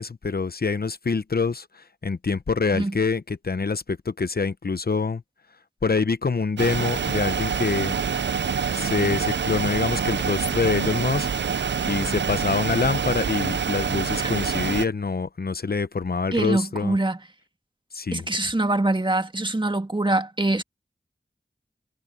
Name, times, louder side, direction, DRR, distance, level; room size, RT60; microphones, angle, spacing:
voice 1, 0.0-5.2 5.8-7.9 8.7-11.3 11.9-17.0 17.9-18.3, left 4 dB, 60° left, 0.9 m, -25 dB
sound 1, 6.6-14.8, right 6 dB, 85° right, 0.5 m, -26 dB
voice 2, 16.3-17.2 18.1-20.6, right 2 dB, 25° right, 1.8 m, -24 dB
cardioid pair, 40°, 18 cm